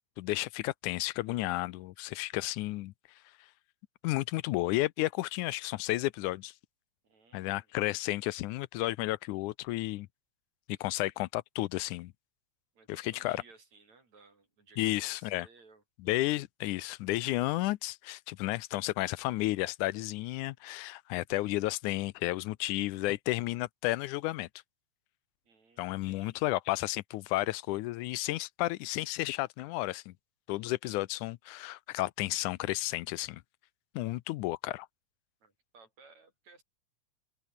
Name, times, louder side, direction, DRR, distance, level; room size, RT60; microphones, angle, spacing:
voice 1, 0.2-2.9 4.0-6.5 7.3-10.1 10.7-12.1 12.9-13.4 14.8-15.5 16.0-24.5 25.8-30.1 30.5-33.4 34.0-34.9, left 18 dB, 85° left, 2.2 m, -32 dB
voice 2, 7.0-7.7 10.8-11.1 12.8-15.8 25.5-26.4 35.4-36.6, right 4 dB, 65° right, 7.1 m, -60 dB
open air
omnidirectional pair, 3.5 m